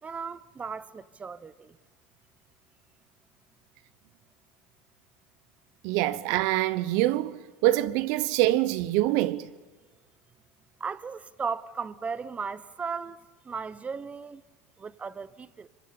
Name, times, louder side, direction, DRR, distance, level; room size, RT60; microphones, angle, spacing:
voice 1, 0.0-1.8 10.8-14.4 14.8-15.7, right 5 dB, 20° right, 1.1 m, -36 dB
voice 2, 5.8-9.5, right 15 dB, 65° right, 1.1 m, -25 dB
26.0 x 24.0 x 8.7 m
supercardioid pair, 100°, 6 cm